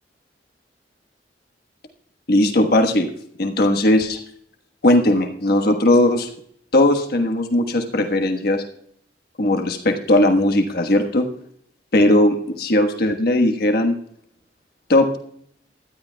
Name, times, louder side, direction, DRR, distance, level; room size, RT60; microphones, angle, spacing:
voice 1, 2.3-3.1 3.4-4.2 4.8-6.3 6.7-8.6 9.4-11.3 11.9-14.0 14.9-15.1, left 1 dB, 60° left, 4 dB, 1.3 m, -18 dB
20.0 x 12.5 x 2.3 m, 0.66 s
head